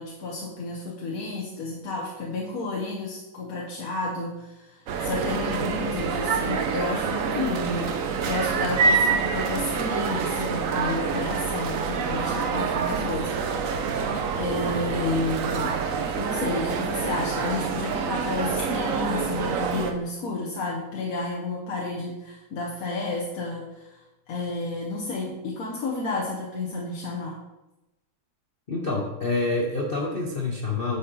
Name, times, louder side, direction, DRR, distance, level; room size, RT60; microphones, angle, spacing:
voice 1, 0.0-15.8 16.2-24.0 24.3-27.4, left 3 dB, 50° left, -3 dB, 1.2 m, -31 dB
sound 1, 4.9-19.9, right 5 dB, 75° right, 0.7 m, -27 dB
voice 2, 28.7-31.0, left 3 dB, 85° left, -1 dB, 0.5 m, -27 dB
9.6 x 5.6 x 3.9 m, 0.98 s
omnidirectional pair, 2.3 m